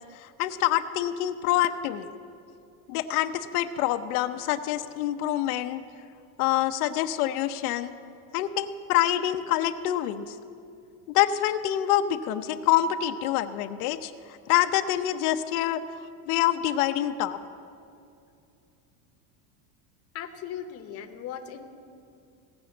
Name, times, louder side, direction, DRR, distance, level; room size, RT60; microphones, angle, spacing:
voice 1, 0.0-2.1 2.9-5.8 6.4-7.9 8.3-10.4 11.1-14.1 14.5-15.8 16.3-17.4, left 12 dB, 90° left, 8 dB, 0.8 m, -26 dB
voice 2, 20.1-21.7, left 9 dB, 35° left, 6 dB, 0.9 m, -38 dB
17.0 x 6.2 x 7.7 m, 2.6 s
cardioid pair, 155°, 42 cm